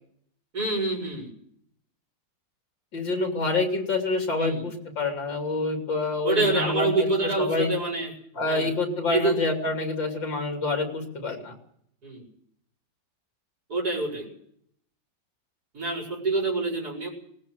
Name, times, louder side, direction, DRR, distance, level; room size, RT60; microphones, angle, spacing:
voice 1, 0.5-1.3 4.4-4.6 6.2-8.1 8.4-8.7 9.1-9.4 12.0-12.3 13.7-14.3 15.7-17.1, right 2 dB, 55° right, -1 dB, 5.9 m, -26 dB
voice 2, 2.9-6.9 7.4-7.7 8.4-11.5, left 3 dB, 90° left, 3 dB, 3.5 m, -27 dB
19.5 x 18.5 x 7.8 m, 0.68 s
omnidirectional pair, 2.0 m